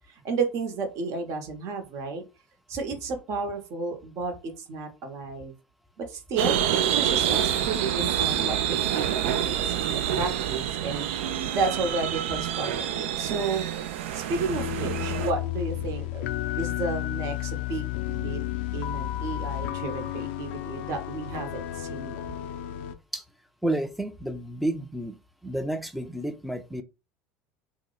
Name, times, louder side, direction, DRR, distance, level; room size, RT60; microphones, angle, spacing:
voice 1, 0.0-2.2 2.7-5.5 6.0-6.6 6.9-13.7 14.1-16.2 16.6-18.4 18.7-22.2, right 4 dB, 50° right, 0.9 m, -32 dB
sound 1, 6.4-15.3, right 10 dB, 70° right, 0.4 m, -27 dB
sound 2, 14.3-22.9, left 14 dB, 65° left, 0.4 m, -32 dB
voice 2, 23.6-25.2 25.4-26.8, right 1 dB, ahead, 0.5 m, -30 dB
2.7 x 2.1 x 3.8 m
hypercardioid pair, 80°, 7 cm